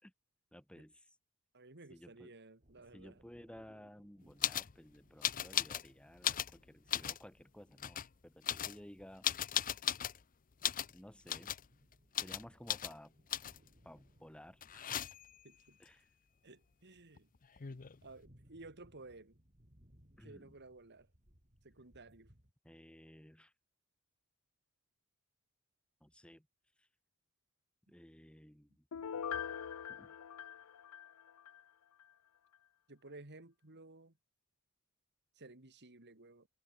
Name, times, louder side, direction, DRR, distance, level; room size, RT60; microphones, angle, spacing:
voice 1, 0.5-1.1 1.9-2.3 2.9-9.6 10.9-11.5 12.2-13.1 13.8-15.0 15.8-16.1 20.2-20.5 22.6-23.5 26.0-26.5 26.8-26.9 27.9-28.9 29.9-30.2, equal, 5° left, 2.0 m, -56 dB
voice 2, 1.5-3.2 15.4-15.8 16.4-17.3 17.7-19.4 20.2-21.1 21.6-22.3 32.9-34.1 35.4-36.5, right 2 dB, 50° right, 2.7 m, -55 dB
sound 1, 2.6-10.2 10.5-22.5, equal, 35° right, 5.7 m, -69 dB
sound 2, 4.4-4.7 5.2-5.9 6.2-7.2 7.8-8.1 8.4-10.2 10.6-10.9 11.3-11.7 12.1-12.4 12.7-12.9 13.3-13.7 14.6-15.4 17.2-17.3 17.4-18.0, left 10 dB, 40° left, 0.6 m, -37 dB
Piano, 28.9-31.6 32.0-32.1, left 8 dB, 90° left, 0.5 m, -43 dB
head